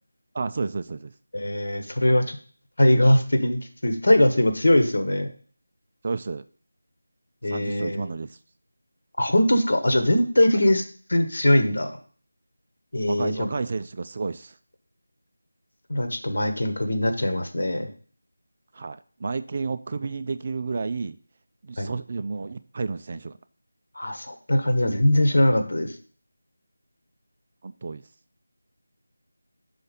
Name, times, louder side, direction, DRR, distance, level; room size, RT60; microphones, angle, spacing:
voice 1, 0.3-1.1 6.0-6.4 7.5-8.4 13.1-14.6 18.7-21.2 21.6-23.3 27.6-28.0, right 4 dB, 35° right, 12 dB, 0.3 m, -31 dB
voice 2, 1.3-2.4 2.8-5.3 7.4-8.1 9.2-10.8 11.1-11.9 12.9-13.5 15.9-17.9 21.8-21.9 23.9-25.9, left 1 dB, 70° left, 7 dB, 1.3 m, -21 dB
5.7 x 4.1 x 5.2 m, 0.43 s
figure-of-eight pair, 170°, 0 cm